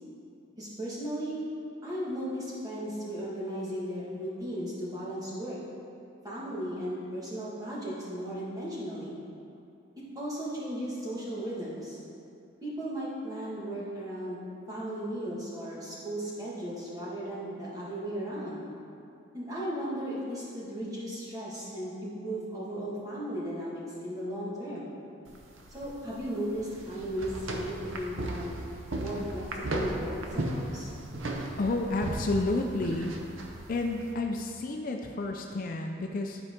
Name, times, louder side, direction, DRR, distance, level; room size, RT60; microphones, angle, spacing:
voice 1, 0.6-1.4 1.8-5.6 6.2-9.2 10.2-12.0 12.6-14.4 14.7-18.6 19.3-24.9 25.7-28.5 29.0-30.9, equal, 20° right, -8 dB, 1.6 m, -36 dB
sound 1, 25.3-34.1, right 1 dB, 75° right, 0.8 m, -36 dB
voice 2, 31.6-33.1 33.7-36.4, left 2 dB, 45° left, 2 dB, 0.4 m, -30 dB
11.5 x 4.7 x 3.7 m, 2.6 s
head